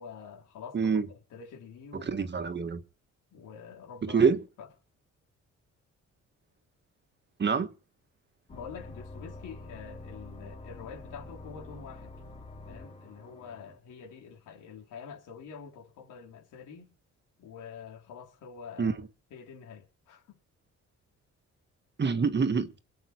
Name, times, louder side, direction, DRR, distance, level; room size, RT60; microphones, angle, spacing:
voice 1, 0.0-2.2 3.3-4.3 4.6-4.7 8.5-12.1 12.7-16.9 17.4-19.0 19.3-20.4, left 6 dB, 85° left, 4.3 m, -46 dB
voice 2, 0.7-1.1 1.9-2.8 4.0-4.4 7.4-7.7 18.8-18.9 22.0-22.7, right 5 dB, 35° right, 1.6 m, -26 dB
sound 1, 8.5-13.8, left 2 dB, 20° left, 3.2 m, -46 dB
22.5 x 8.1 x 4.6 m
cardioid pair, 90°, 30 cm